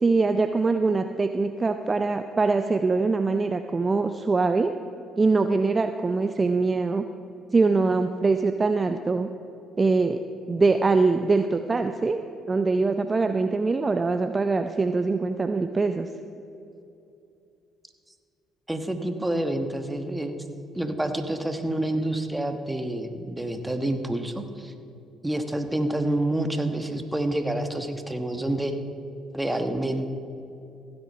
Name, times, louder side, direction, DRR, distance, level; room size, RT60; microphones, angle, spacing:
voice 1, 0.0-4.7 5.2-7.0 7.5-9.3 9.8-10.2 10.5-12.2 12.5-16.1, right 3 dB, 30° right, 8 dB, 0.5 m, -23 dB
voice 2, 18.7-20.4 20.7-24.7 25.2-28.8 29.3-30.1, right 1 dB, 10° right, 7 dB, 1.3 m, -28 dB
15.5 x 8.0 x 5.5 m, 2.7 s
hypercardioid pair, 60°, 0 cm